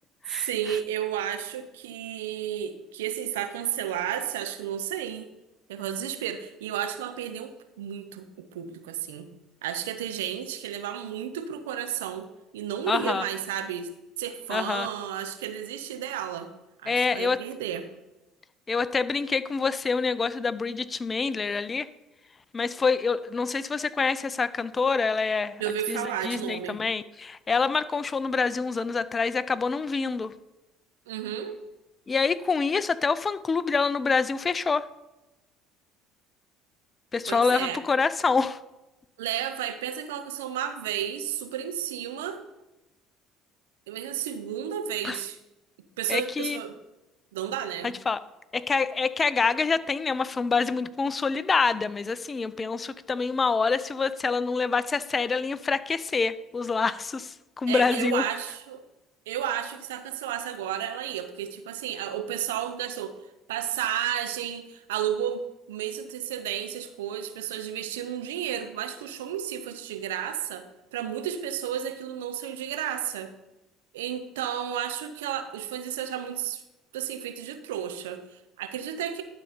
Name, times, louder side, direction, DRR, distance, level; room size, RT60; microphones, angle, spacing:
voice 1, 0.3-5.3 5.7-9.3 9.6-12.3 12.5-13.9 14.2-16.5 16.8-17.8 25.6-26.8 31.1-31.6 37.3-37.8 39.2-42.4 43.9-45.4 46.0-46.8 47.3-48.0 57.7-58.8 59.3-63.1 63.5-70.7 70.9-73.3 73.9-76.6 76.9-79.2, right 10 dB, 85° right, 9 dB, 0.7 m, -32 dB
voice 2, 12.9-13.2 14.5-14.9 16.9-17.4 18.7-21.9 22.5-25.6 25.9-30.3 32.1-34.9 37.1-38.6 45.0-45.2 46.1-46.6 47.8-48.2 48.5-58.2, left 4 dB, 30° left, 16 dB, 0.5 m, -26 dB
12.0 x 4.1 x 5.1 m, 1.0 s
hypercardioid pair, 65°, 0 cm